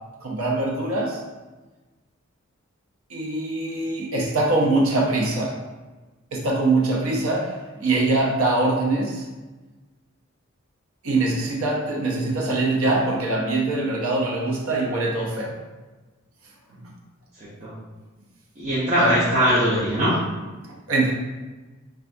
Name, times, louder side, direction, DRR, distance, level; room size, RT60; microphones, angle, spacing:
voice 1, 0.2-1.2 3.1-5.6 6.3-9.2 11.0-15.6 16.8-16.9 19.0-19.2 20.7-21.1, right 2 dB, 80° right, -1 dB, 0.7 m, -23 dB
voice 2, 17.4-17.7 18.6-20.1, equal, 35° right, -10 dB, 0.6 m, -21 dB
3.4 x 2.4 x 2.6 m, 1.2 s
head